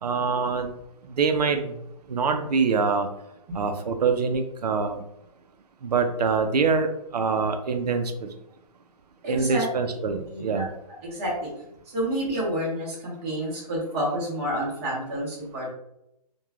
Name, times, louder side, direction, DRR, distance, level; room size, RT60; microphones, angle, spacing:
voice 1, 0.0-0.7 1.1-1.8 2.1-3.1 3.5-5.0 5.8-8.3 9.3-10.7, right 5 dB, 85° right, 6 dB, 0.4 m, -25 dB
voice 2, 9.2-10.0 10.3-10.6 11.0-11.5 11.9-15.7, equal, 20° right, -5 dB, 0.9 m, -29 dB
3.0 x 2.2 x 2.3 m, 0.82 s
hypercardioid pair, 165°, 20 cm